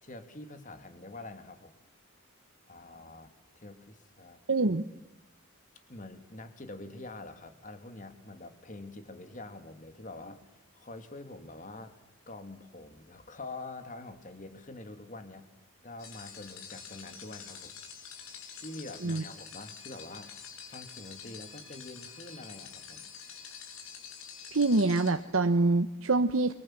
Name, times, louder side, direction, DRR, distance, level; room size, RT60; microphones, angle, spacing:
voice 1, 0.0-1.7 2.7-4.4 5.9-11.9 12.3-15.5 15.8-17.8 18.5-23.1, left 2 dB, 35° left, 8 dB, 2.6 m, -46 dB
voice 2, 4.5-4.8 19.0-19.2 24.5-26.5, right 3 dB, 70° right, 8 dB, 1.0 m, -25 dB
sound 1, 16.0-25.1, left 7 dB, 80° left, 6.7 m, -47 dB
29.5 x 24.0 x 7.5 m, 0.94 s
head